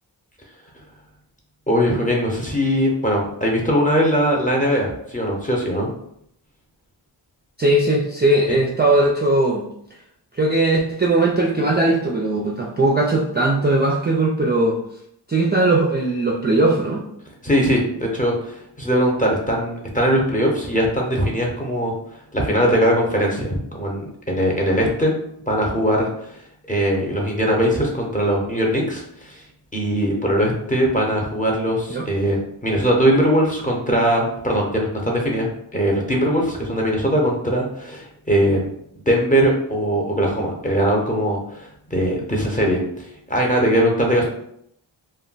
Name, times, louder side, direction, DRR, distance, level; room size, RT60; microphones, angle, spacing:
voice 1, 1.7-5.9 8.5-8.6 17.4-21.9 22.3-25.1 25.5-26.4 26.7-29.4 29.7-38.7 39.1-42.8 43.3-44.3, equal, 15° left, -1 dB, 0.8 m, -20 dB
voice 2, 7.6-9.7 10.3-14.8 15.3-17.0 31.9-32.0, right 2 dB, 25° right, -2 dB, 0.4 m, -19 dB
2.3 x 2.1 x 3.9 m, 0.72 s
wide cardioid pair, 65°, 47 cm